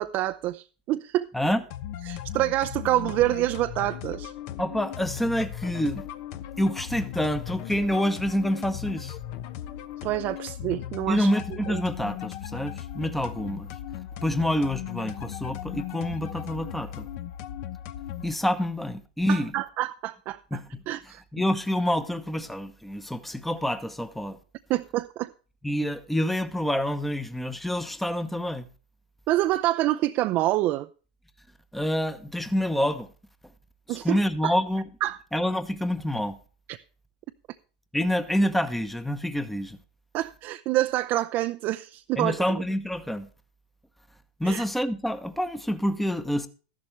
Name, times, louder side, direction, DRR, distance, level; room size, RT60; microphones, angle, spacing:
voice 1, 0.0-1.3 2.1-4.3 10.0-11.3 11.7-11.8 19.3-20.4 20.9-21.2 24.7-25.3 29.3-30.9 33.9-34.5 35.0-35.2 36.7-36.8 40.1-42.4 44.4-44.6, right 16 dB, 45° right, 0.6 m, -27 dB
sound 1, 1.7-18.3, left 11 dB, 55° left, 1.0 m, -37 dB
voice 2, 4.6-6.0 6.6-9.2 11.1-13.7 14.2-17.1 18.2-19.5 20.5-20.7 21.3-24.4 25.6-28.7 31.7-33.1 33.9-34.9 35.3-36.4 37.9-39.8 42.2-43.3 44.4-46.5, equal, 5° left, 1.0 m, -27 dB
13.0 x 11.5 x 3.3 m
hypercardioid pair, 115°, 5 cm